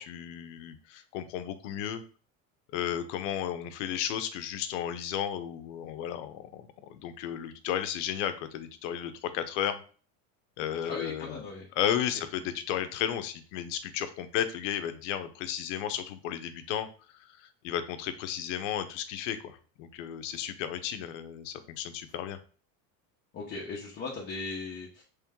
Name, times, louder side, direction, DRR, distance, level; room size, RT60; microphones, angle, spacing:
voice 1, 0.0-2.0 2.7-9.8 10.6-11.4 11.8-16.9 17.1-22.4, left 10 dB, 80° left, 10 dB, 0.7 m, -34 dB
voice 2, 10.9-11.7 23.3-25.0, left 4 dB, 30° left, -3 dB, 0.7 m, -38 dB
3.2 x 3.0 x 3.6 m, 0.39 s
supercardioid pair, 145°, 36 cm